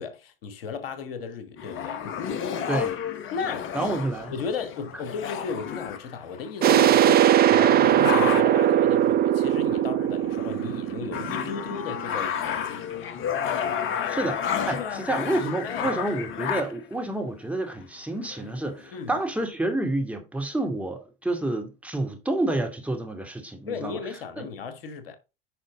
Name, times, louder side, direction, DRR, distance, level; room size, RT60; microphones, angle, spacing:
voice 1, 0.0-2.1 3.3-3.7 4.3-13.3 14.7-15.0 15.6-16.0 18.9-19.2 23.7-25.2, left 5 dB, 80° left, 1.4 m, -35 dB
sound 1, 1.6-6.6 7.1-7.2 7.4-8.7 9.4-9.8 10.2-16.9 17.8-17.9 18.2-18.9, left 8 dB, 45° left, 1.2 m, -31 dB
voice 2, 2.7-3.0 3.7-4.3 14.1-24.0 24.4-24.5, right 2 dB, 5° right, 2.3 m, -29 dB
sound 2, 6.6-12.1, right 11 dB, 35° right, 0.6 m, -20 dB
9.5 x 5.4 x 3.7 m
hypercardioid pair, 80°, 29 cm